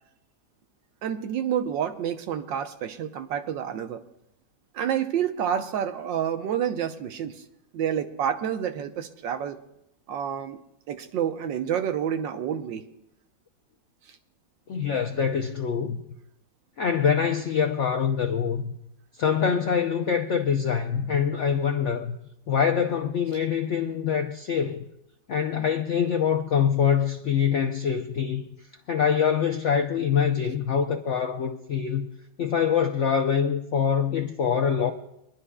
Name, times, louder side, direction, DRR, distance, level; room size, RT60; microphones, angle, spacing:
voice 1, 1.0-4.0 4.7-7.4 7.7-9.6 10.1-10.6 10.9-12.9, right 9 dB, 85° right, 1.5 m, -28 dB
voice 2, 14.7-16.0 16.8-18.8 19.2-22.2 22.5-24.8 25.3-28.4 28.9-32.1 32.4-34.9, left 7 dB, 75° left, 0.6 m, -24 dB
24.5 x 11.0 x 2.3 m
omnidirectional pair, 1.9 m